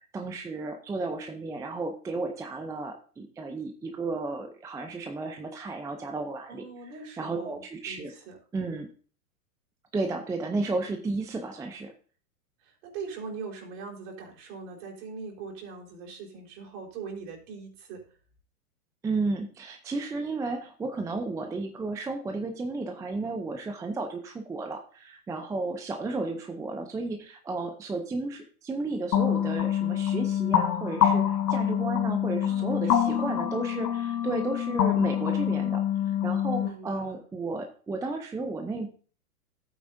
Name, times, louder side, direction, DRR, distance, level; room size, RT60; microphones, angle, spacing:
voice 1, 0.1-6.9 7.2-8.1 8.5-8.9 9.9-11.9 19.0-35.8 36.2-38.9, right 3 dB, 5° right, 5 dB, 0.5 m, -33 dB
voice 2, 6.5-8.4 12.6-18.1 32.4-33.3 36.6-37.2, right 4 dB, 55° right, -1 dB, 4.3 m, -41 dB
sound 1, 29.1-36.7, left 10 dB, 40° left, 1.7 m, -26 dB
12.0 x 8.8 x 2.7 m, 0.42 s
hypercardioid pair, 110°, 46 cm